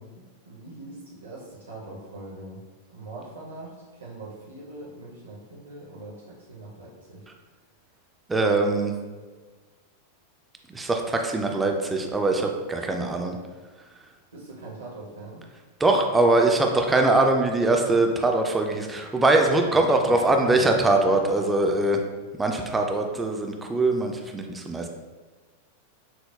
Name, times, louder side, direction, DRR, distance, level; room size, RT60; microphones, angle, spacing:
voice 1, 0.0-2.6 2.9-7.3 14.3-15.4 19.7-20.2 20.5-20.9, right 2 dB, 70° right, -4 dB, 0.6 m, -42 dB
voice 2, 8.3-8.9 10.7-13.4 15.8-22.0 22.4-24.9, right 2 dB, 10° right, 3 dB, 0.3 m, -22 dB
5.6 x 2.0 x 2.2 m, 1.4 s
figure-of-eight pair, 90°, 0 cm